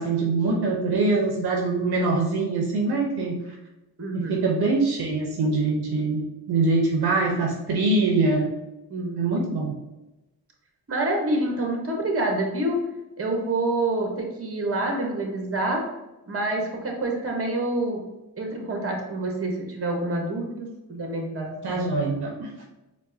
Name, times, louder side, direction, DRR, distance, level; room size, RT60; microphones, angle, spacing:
voice 1, 0.0-3.4 4.1-6.2 6.5-8.5 9.2-9.7 21.6-22.5, right 3 dB, 70° right, -1 dB, 0.7 m, -23 dB
voice 2, 4.0-4.4 8.9-9.2 10.9-12.8 13.2-15.8 16.3-18.0 18.4-21.8, right 2 dB, 35° right, 1 dB, 0.9 m, -27 dB
4.5 x 2.4 x 2.6 m, 1.0 s
cardioid pair, 55°, 40 cm